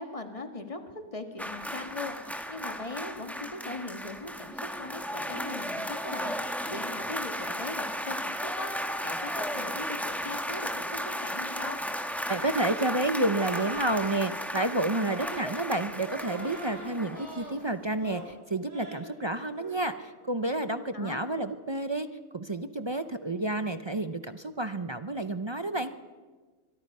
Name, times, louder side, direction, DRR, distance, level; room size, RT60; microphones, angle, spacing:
voice 1, 0.0-11.8 20.9-21.2, left 2 dB, 25° left, 6 dB, 1.7 m, -40 dB
sound 1, 1.4-17.7 17.9-18.1, equal, ahead, 1.2 m, -35 dB
voice 2, 12.3-22.1 22.3-25.9, right 2 dB, 40° right, 10 dB, 0.4 m, -30 dB
sound 2, 13.3-14.3 15.0-15.5 16.0-17.6 17.9-18.3 18.6-19.1 19.5-19.8, right 1 dB, 55° right, 5.3 m, -42 dB
24.0 x 22.5 x 5.5 m, 1.4 s
omnidirectional pair, 1.6 m